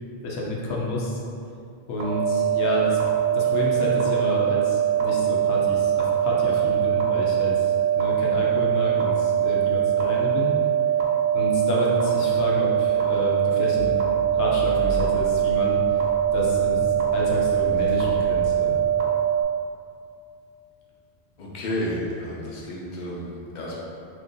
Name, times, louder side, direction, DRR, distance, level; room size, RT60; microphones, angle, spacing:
voice 1, 0.2-1.2 1.9-3.0 3.3-10.5 11.3-13.9 14.4-15.8 16.3-18.8, left 2 dB, 80° left, -3 dB, 0.9 m, -29 dB
sound 1, 2.0-19.4, right 10 dB, 55° right, 0.4 m, -22 dB
Accelerating revving vroom, 13.7-19.2, right 1 dB, 10° left, 0.7 m, -38 dB
voice 2, 21.4-23.8, left 1 dB, 50° left, -5 dB, 0.7 m, -31 dB
2.9 x 2.5 x 3.7 m, 2.5 s
omnidirectional pair, 1.1 m